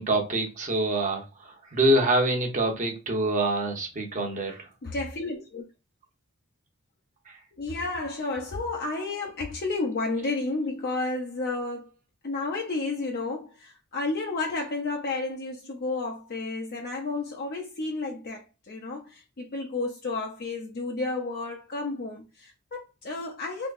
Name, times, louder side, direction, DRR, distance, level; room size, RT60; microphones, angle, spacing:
voice 1, 0.0-4.7, right 1 dB, 35° right, 0.8 m, -25 dB
voice 2, 4.8-5.6 7.6-11.9 12.2-23.7, left 3 dB, 45° left, 0.5 m, -31 dB
3.6 x 2.8 x 2.5 m
head